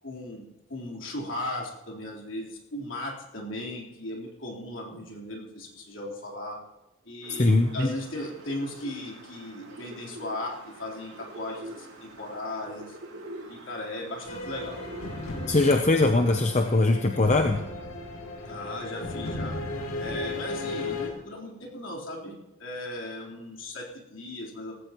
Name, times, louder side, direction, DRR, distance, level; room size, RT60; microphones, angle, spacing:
voice 1, 0.0-6.6 7.1-13.0 13.5-14.8 18.5-19.5 20.0-24.7, left 1 dB, 60° left, -2 dB, 3.9 m, -37 dB
sound 1, 7.2-16.7, right 2 dB, 80° right, 4.6 m, -45 dB
voice 2, 7.4-7.9 15.5-17.6, left 2 dB, 30° left, 5 dB, 0.7 m, -21 dB
sound 2, 14.3-21.1, left 2 dB, 90° left, 2.9 m, -35 dB
18.0 x 16.5 x 3.1 m, 0.99 s
head